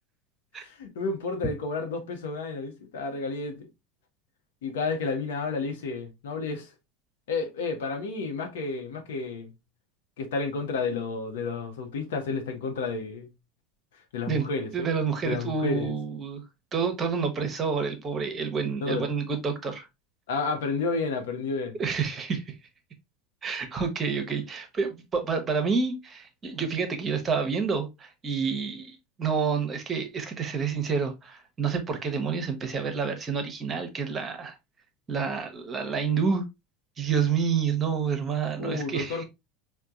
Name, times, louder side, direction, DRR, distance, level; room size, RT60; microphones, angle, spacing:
voice 1, 0.6-3.7 4.6-6.7 7.3-9.5 10.2-13.3 14.1-14.9 15.2-15.9 18.8-19.0 20.3-21.7 38.6-39.2, left 4 dB, 70° left, 0.8 m, -31 dB
voice 2, 14.7-16.4 16.7-19.9 21.8-22.5 23.4-34.5 35.1-36.4 37.0-39.2, right 5 dB, 30° right, 0.8 m, -28 dB
4.5 x 2.2 x 2.5 m
figure-of-eight pair, 75°, 0 cm